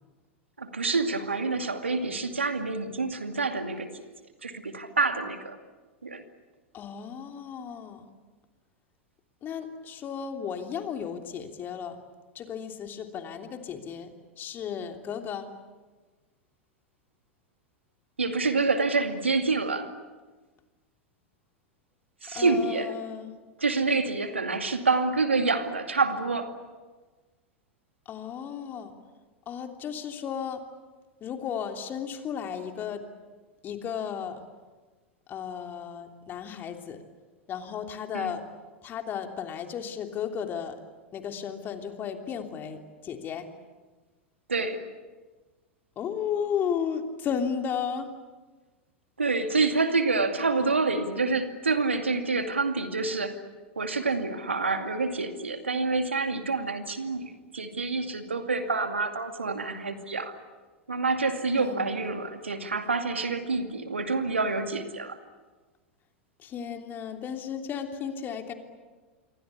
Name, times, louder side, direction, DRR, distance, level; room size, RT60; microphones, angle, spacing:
voice 1, 0.6-4.0 4.4-5.6 6.0-6.2 18.2-19.9 22.2-23.0 23.6-26.5 38.1-38.3 44.5-44.8 49.2-53.4 53.8-60.4 60.9-65.2, right 3 dB, 85° right, 7 dB, 2.4 m, -27 dB
voice 2, 6.7-8.0 9.4-12.0 12.3-15.5 22.3-23.3 28.0-28.9 29.4-30.6 31.2-33.0 33.6-34.4 35.3-37.0 37.5-38.4 38.8-40.8 41.1-43.5 45.9-48.1 50.6-50.7 61.6-62.0 66.4-68.5, left 7 dB, 30° left, 5 dB, 3.2 m, -34 dB
28.0 x 23.5 x 8.5 m, 1.3 s
figure-of-eight pair, 90°, 6 cm